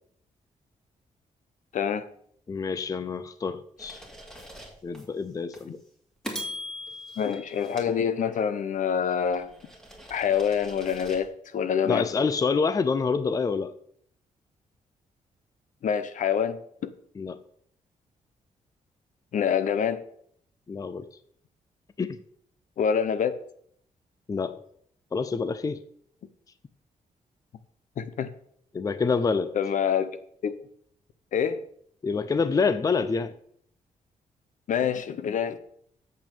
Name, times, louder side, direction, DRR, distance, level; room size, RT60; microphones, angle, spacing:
voice 1, 1.7-2.1 7.2-9.5 10.1-12.1 15.8-16.9 19.3-20.0 22.8-23.3 28.0-28.3 29.5-30.1 30.4-30.6 31.3-31.6 34.7-35.6, left 7 dB, 65° left, 0.8 m, -26 dB
voice 2, 2.5-4.0 4.8-5.8 11.8-13.7 17.2-17.4 20.7-21.1 22.0-22.2 24.3-24.6 25.1-25.8 28.7-29.5 32.0-33.4, left 5 dB, 25° left, 0.5 m, -27 dB
sound 1, 3.8-5.0 5.5-5.7 6.2-8.6 9.1-11.3, left 1 dB, 5° left, 2.4 m, -41 dB
7.9 x 6.1 x 6.9 m
wide cardioid pair, 130°, 14 cm